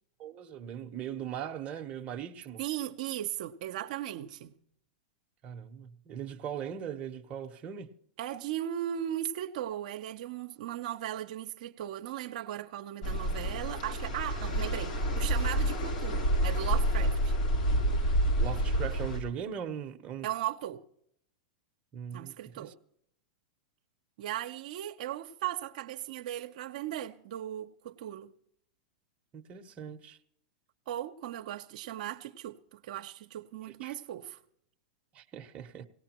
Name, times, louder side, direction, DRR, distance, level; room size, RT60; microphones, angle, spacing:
voice 1, 0.2-2.6 5.4-7.9 18.4-20.3 21.9-22.7 29.3-30.2 33.7-33.9 35.1-35.8, right 8 dB, 30° right, 0.9 m, -39 dB
voice 2, 2.6-4.5 8.2-17.3 20.2-20.8 22.1-22.7 24.2-28.3 30.9-34.4, right 12 dB, 65° right, 0.7 m, -37 dB
sound 1, 13.0-19.2, equal, 65° left, 3.6 m, -28 dB
18.0 x 18.0 x 3.0 m
hypercardioid pair, 125°, 5 cm